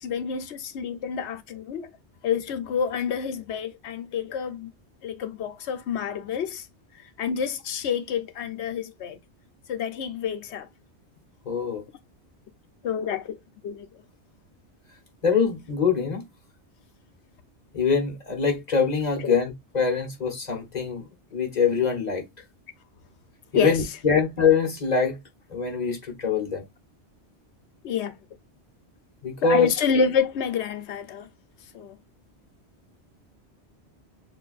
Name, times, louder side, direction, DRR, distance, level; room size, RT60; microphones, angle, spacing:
voice 1, 0.0-1.9 2.2-4.7 5.0-6.7 7.2-9.2 9.7-10.7 12.8-13.4 13.6-13.9 19.2-19.3 23.5-23.8 24.1-24.2 27.8-28.1 29.4-31.3 31.7-32.0, left 7 dB, 75° left, 0.9 m, -28 dB
voice 2, 11.4-11.8 15.2-16.2 17.7-22.2 23.5-25.2 25.5-26.6 29.2-29.7, left 5 dB, 40° left, 1.2 m, -24 dB
6.8 x 2.5 x 2.4 m
omnidirectional pair, 1.2 m